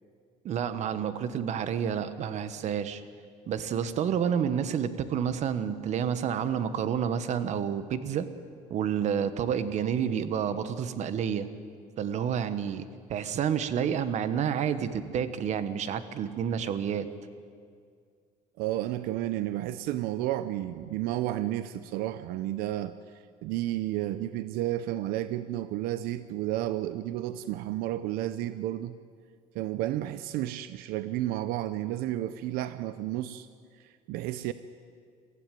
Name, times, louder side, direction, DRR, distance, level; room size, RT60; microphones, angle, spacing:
voice 1, 0.4-3.0 3.5-8.3 8.7-11.5 12.0-17.1, right 8 dB, 50° right, 12 dB, 1.3 m, -29 dB
voice 2, 18.6-29.0 29.5-33.5 33.8-34.5, right 14 dB, 85° right, 13 dB, 0.7 m, -32 dB
23.5 x 15.0 x 9.1 m, 2.2 s
cardioid pair, 140°, 15 cm